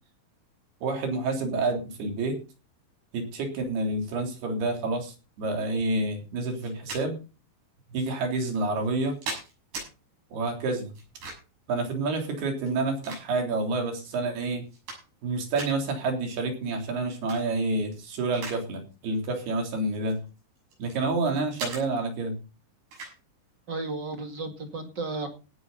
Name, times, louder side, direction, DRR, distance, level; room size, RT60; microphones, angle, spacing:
voice 1, 0.8-2.4 3.1-7.2 7.9-9.2 10.3-10.9 11.7-14.6 15.2-20.2 20.8-22.4, right 3 dB, 75° right, 3 dB, 5.3 m, -28 dB
sound 1, 6.6-7.0 8.0-8.1 8.8-9.9 11.0-11.6 12.6-13.6 14.2-14.3 14.6-15.3 15.6-15.8 17.1-17.4 17.8-18.6 18.9-19.2 19.9-21.0 21.6-21.8 22.9-23.2, right 3 dB, 90° right, 9.1 m, -38 dB
voice 2, 23.7-25.3, right 3 dB, 35° right, 5 dB, 2.2 m, -33 dB
18.0 x 9.6 x 4.1 m, 0.33 s
omnidirectional pair, 4.6 m